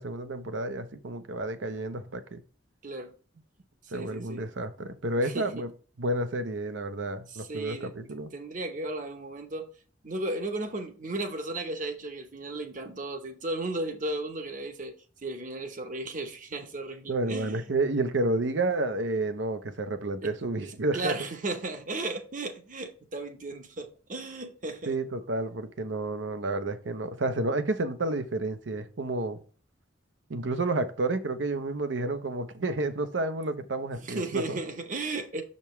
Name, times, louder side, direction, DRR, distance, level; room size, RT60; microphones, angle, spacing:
voice 1, 0.0-2.4 3.9-5.7 6.0-8.3 17.1-21.1 24.9-29.4 30.3-34.6, right 2 dB, 70° right, 0.8 m, -30 dB
voice 2, 3.8-4.5 5.2-5.5 7.3-7.9 8.3-9.7 10.0-14.9 15.2-17.7 20.2-20.3 20.6-25.0 34.0-35.4, right 2 dB, 45° right, 0.9 m, -35 dB
6.8 x 5.3 x 3.1 m
head